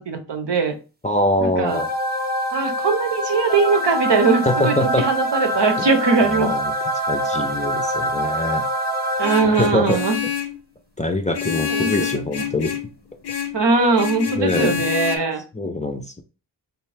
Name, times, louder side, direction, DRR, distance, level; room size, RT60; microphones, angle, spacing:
voice 1, 0.1-0.7 1.4-1.8 2.5-6.5 9.2-10.2 11.7-12.1 13.5-15.4, right 4 dB, 65° right, 6 dB, 0.8 m, -20 dB
voice 2, 1.0-1.9 4.5-5.1 5.8-5.9 6.3-6.7 7.1-8.7 9.5-10.0 11.0-12.7 14.4-14.8 15.5-16.2, left 1 dB, 15° left, 4 dB, 0.5 m, -23 dB
sound 1, 1.7-9.9, equal, 20° right, 0.7 m, -25 dB
Vehicle horn car horn honking, 9.2-10.6 11.3-12.9 13.2-13.6 14.0-15.2, left 9 dB, 55° left, 0.6 m, -27 dB
3.3 x 2.6 x 3.3 m, 0.33 s
cardioid pair, 45°, 46 cm